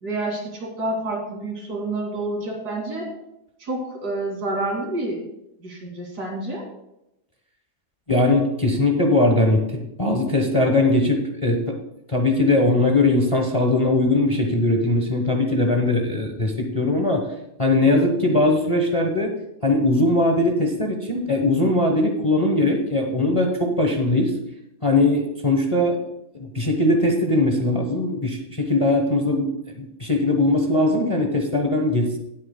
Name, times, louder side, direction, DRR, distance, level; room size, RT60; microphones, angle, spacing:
voice 1, 0.0-3.1 3.6-5.2 5.6-6.6, right 2 dB, 85° right, -1 dB, 3.1 m, -28 dB
voice 2, 8.1-11.8 12.1-17.2 17.6-19.3 19.6-24.3 24.8-26.0 26.3-32.2, left 2 dB, 25° left, 2 dB, 0.8 m, -20 dB
16.5 x 8.3 x 2.2 m, 0.86 s
omnidirectional pair, 1.7 m